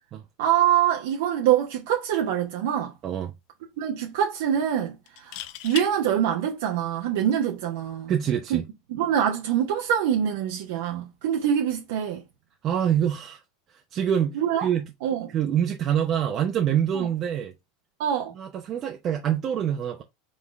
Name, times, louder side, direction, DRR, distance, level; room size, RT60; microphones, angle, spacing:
voice 1, 0.4-2.9 3.8-8.1 8.5-8.6 8.9-12.2 14.3-14.7 15.0-15.3 18.0-18.3, right 10 dB, 70° right, 0.9 m, -25 dB
sound 1, 2.2-2.4 2.8-2.9 5.1-5.9 7.7-7.9, left 14 dB, 60° left, 0.4 m, -36 dB
voice 2, 8.1-8.6 12.6-13.4 13.9-14.9 15.3-17.5 18.4-20.0, right 9 dB, 40° right, 0.7 m, -25 dB
3.9 x 3.8 x 3.1 m
hypercardioid pair, 90°, 0 cm